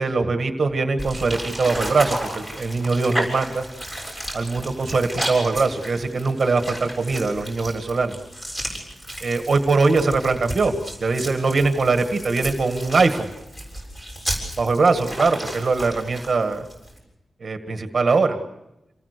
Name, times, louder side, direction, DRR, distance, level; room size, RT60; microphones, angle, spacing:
voice 1, 0.0-3.6 4.3-8.1 9.2-10.7 11.0-13.3 14.6-16.7 17.4-18.4, right 3 dB, 40° right, 6 dB, 1.8 m, -21 dB
sound 1, 1.0-17.0, equal, 15° left, 7.2 m, -33 dB
28.5 x 20.0 x 6.7 m, 0.93 s
wide cardioid pair, 165°, 0 cm